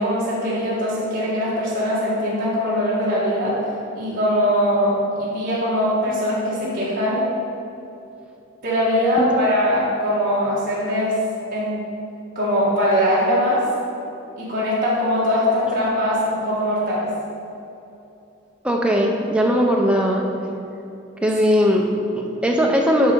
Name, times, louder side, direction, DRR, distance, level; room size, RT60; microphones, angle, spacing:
voice 1, 0.0-3.5 3.9-7.3 8.6-11.2 11.5-11.8 12.3-13.6 14.4-17.1, equal, 40° right, -9 dB, 1.5 m, -21 dB
voice 2, 18.6-20.2 21.2-23.1, equal, 5° right, 0 dB, 0.6 m, -19 dB
8.2 x 5.4 x 4.6 m, 2.8 s
head